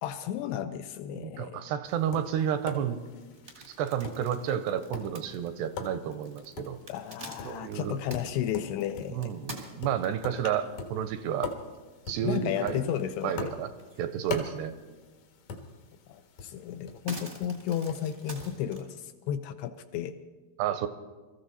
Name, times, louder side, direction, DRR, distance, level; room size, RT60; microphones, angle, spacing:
voice 1, 0.0-1.6 6.9-9.3 12.2-13.5 16.1-20.1, left 10 dB, 80° left, 9 dB, 2.6 m, -33 dB
voice 2, 1.1-3.0 3.7-6.8 7.4-8.0 9.1-11.5 12.1-13.7 14.0-14.7 20.6-20.9, right 9 dB, 80° right, 10 dB, 2.5 m, -31 dB
Tap, 1.9-18.6, left 3 dB, 60° left, 2.4 m, -43 dB
sound 1, 3.2-10.4 11.0-11.1 11.5-11.6 11.9-12.8 13.1-14.1 14.4-14.5 15.9-16.0 16.4-18.9, right 2 dB, 45° right, 0.6 m, -46 dB
24.0 x 14.0 x 4.1 m, 1.3 s
omnidirectional pair, 5.1 m